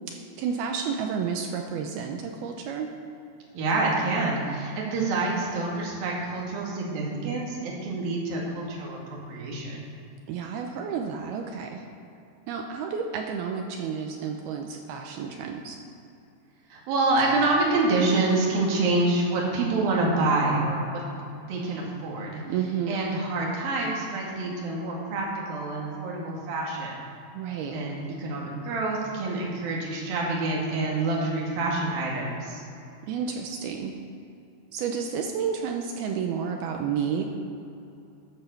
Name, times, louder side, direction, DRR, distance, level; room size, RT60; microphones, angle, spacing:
voice 1, 0.1-2.9 10.3-11.8 12.5-15.8 22.5-23.1 27.3-27.8 33.1-33.9 34.7-37.2, right 6 dB, 80° right, 3 dB, 2.4 m, -31 dB
voice 2, 3.5-9.8 16.7-21.0 21.5-22.4 22.9-27.0 27.7-32.6, right 2 dB, 60° right, -3 dB, 3.8 m, -27 dB
14.0 x 8.0 x 6.7 m, 2.7 s
omnidirectional pair, 5.1 m